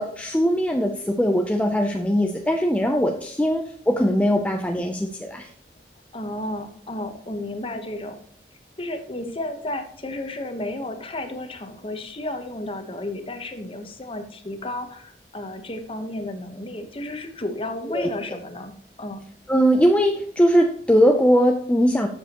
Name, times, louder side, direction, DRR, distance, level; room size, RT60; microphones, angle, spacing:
voice 1, 0.0-5.5 17.9-18.1 19.5-22.1, equal, 5° left, 3 dB, 0.5 m, -20 dB
voice 2, 6.1-8.2 8.8-18.7 19.0-19.2, left 1 dB, 30° left, 6 dB, 1.0 m, -32 dB
12.0 x 7.2 x 2.9 m, 0.64 s
head